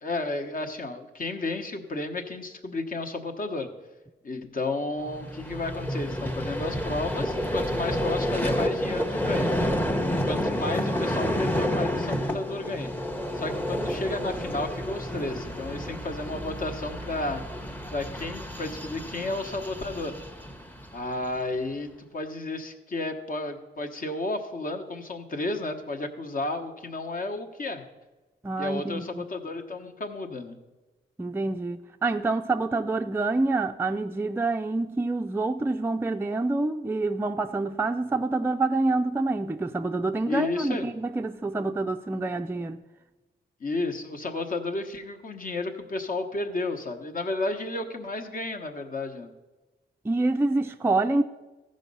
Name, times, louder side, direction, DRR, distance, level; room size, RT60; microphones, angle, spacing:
voice 1, 0.0-3.7 4.2-9.5 10.1-12.9 13.3-17.4 17.9-20.1 20.9-27.8 28.6-30.6 40.2-40.9 43.6-49.3, left 2 dB, 50° left, 1.1 m, -32 dB
Vehicle, 5.0-21.4, equal, 10° left, 0.8 m, -30 dB
voice 2, 28.4-29.2 31.2-42.8 50.0-51.2, right 2 dB, 10° right, 0.4 m, -27 dB
14.5 x 5.2 x 5.4 m
cardioid pair, 80°, 19 cm